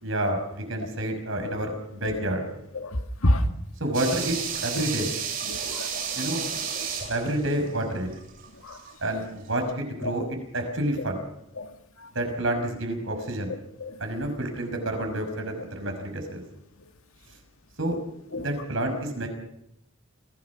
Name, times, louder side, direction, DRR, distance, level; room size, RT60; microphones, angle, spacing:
voice 1, 0.0-2.5 3.8-4.4 4.6-5.1 6.1-6.4 7.1-8.1 9.0-11.2 12.1-13.5 14.0-16.4 17.8-18.0 18.3-19.3, right 1 dB, 65° right, 5.8 m, -29 dB
voice 2, 2.7-3.5 4.7-4.8 5.5-5.9 8.6-8.8 11.6-11.7 12.0-12.1 13.8-14.0 18.3-18.5, left 1 dB, 85° left, 2.1 m, -27 dB
sound 1, 3.9-8.9 9.2-9.3, right 7 dB, 45° right, 7.9 m, -32 dB
26.0 x 17.0 x 6.1 m
head